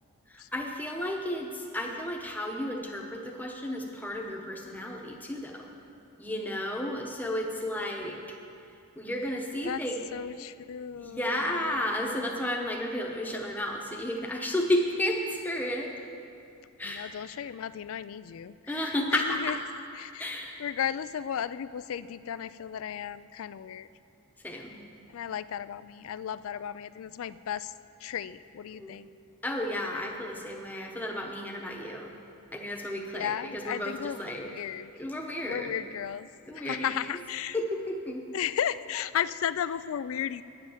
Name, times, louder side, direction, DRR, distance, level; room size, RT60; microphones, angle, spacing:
voice 1, 0.3-5.7 6.2-8.2 9.0-10.0 11.0-15.9 16.8-17.1 18.7-19.6 20.2-20.6 24.4-24.8 28.7-28.9 29.4-32.1 32.5-34.5 35.0-35.7 36.5-37.0 37.5-38.2, left 1 dB, 10° left, 1 dB, 0.9 m, -32 dB
voice 2, 10.1-12.4 16.8-19.6 20.0-20.3 20.6-23.9 25.1-27.7 28.0-29.1 33.1-34.9 35.4-37.6 38.3-40.4, left 9 dB, 65° left, 16 dB, 0.3 m, -35 dB
10.0 x 7.8 x 7.3 m, 2.6 s
head